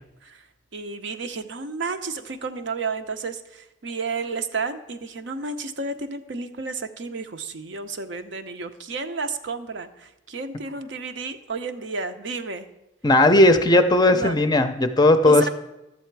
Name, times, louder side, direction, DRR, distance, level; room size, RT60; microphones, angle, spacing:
voice 1, 0.7-12.7 14.1-14.4 15.2-15.5, right 4 dB, 65° right, 8 dB, 0.7 m, -31 dB
voice 2, 13.0-15.5, left 1 dB, 20° left, 9 dB, 0.5 m, -16 dB
12.0 x 7.6 x 4.6 m, 0.94 s
head